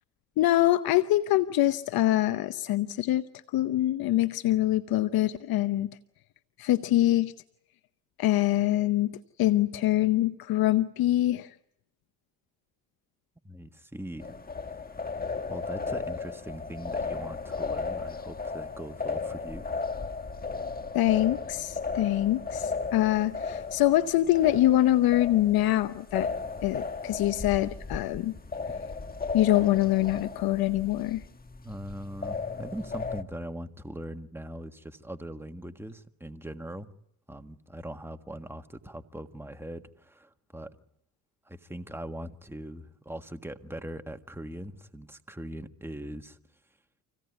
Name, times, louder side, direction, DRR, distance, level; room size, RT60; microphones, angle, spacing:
voice 1, 0.4-3.2 3.5-5.9 6.6-7.3 8.2-9.1 9.4-11.5 20.9-26.3 26.6-28.3 29.3-31.2, left 14 dB, 75° left, 0.8 m, -24 dB
voice 2, 13.4-14.8 15.5-19.7 31.6-36.9 37.3-40.7 41.5-46.4, right 1 dB, 5° right, 1.6 m, -41 dB
sound 1, 14.2-33.2, left 4 dB, 25° left, 1.5 m, -35 dB
26.0 x 17.0 x 9.4 m
supercardioid pair, 70°, 37 cm